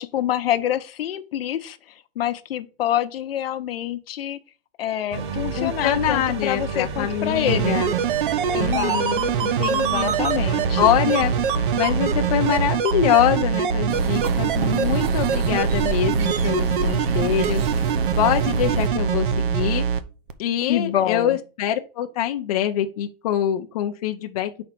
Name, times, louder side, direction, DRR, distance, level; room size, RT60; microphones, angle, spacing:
voice 1, 0.0-1.8 2.2-4.4 4.8-7.8 8.5-9.2 9.6-10.8 20.7-21.4, left 11 dB, 80° left, 0.8 m, -26 dB
sound 1, 5.1-12.7, right 4 dB, 30° right, 0.6 m, -30 dB
voice 2, 5.5-7.9 8.6-10.1 10.4-11.3 11.8-17.9 18.2-19.8 20.4-24.5, left 11 dB, 40° left, 0.5 m, -24 dB
sound 2, 7.5-20.0 20.3-20.4, right 7 dB, 60° right, 0.8 m, -23 dB
sound 3, 13.9-18.9, right 5 dB, 90° right, 1.0 m, -29 dB
5.1 x 4.3 x 5.8 m
supercardioid pair, 175°, 29 cm